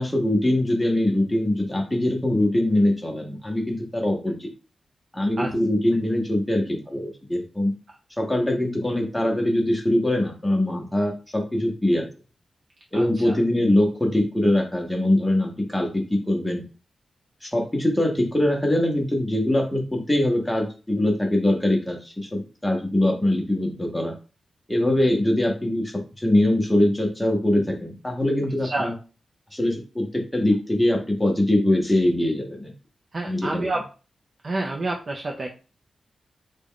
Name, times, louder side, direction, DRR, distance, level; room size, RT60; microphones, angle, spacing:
voice 1, 0.0-4.5 5.1-7.7 8.2-12.1 12.9-16.6 17.4-24.1 24.7-28.9 29.5-32.7 33.2-33.7, left 1 dB, 5° left, 2 dB, 0.8 m, -23 dB
voice 2, 12.9-13.4 25.0-25.1 28.6-28.9 33.1-33.8 34.4-35.5, right 2 dB, 40° right, 0 dB, 0.4 m, -28 dB
3.6 x 2.2 x 3.6 m, 0.34 s
wide cardioid pair, 150°, 0 cm